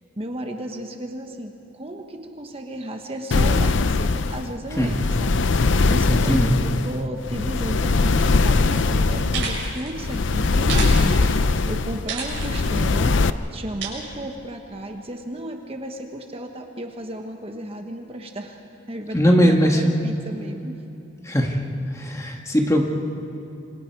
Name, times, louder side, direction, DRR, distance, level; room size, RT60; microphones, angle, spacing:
voice 1, 0.2-13.2 13.5-18.6 18.9-20.8, right 1 dB, 30° right, 4 dB, 1.3 m, -34 dB
sound 1, 3.3-13.3, left 3 dB, 75° left, 0.6 m, -21 dB
voice 2, 6.1-6.6 19.1-19.8 21.2-21.6 21.9-22.8, equal, 15° left, 1 dB, 1.8 m, -19 dB
sound 2, 8.7-8.9 9.2-9.9 10.6-11.4 12.1-12.8 13.8-13.9, right 5 dB, 75° right, 6.5 m, -31 dB
28.0 x 25.5 x 4.7 m, 2.9 s
head